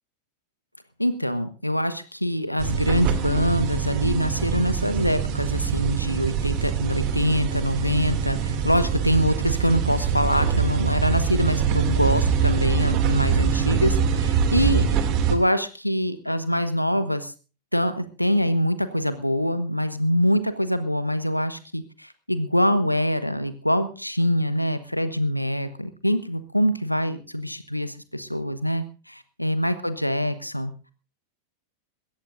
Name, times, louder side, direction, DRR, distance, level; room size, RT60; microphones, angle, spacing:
voice 1, 1.0-14.9 15.3-17.3 17.7-30.7, equal, 90° left, 12 dB, 1.2 m, -24 dB
sound 1, 2.6-15.3, right 7 dB, 40° right, 2.5 m, -24 dB
21.5 x 17.0 x 2.6 m, 0.36 s
figure-of-eight pair, 90°, 0 cm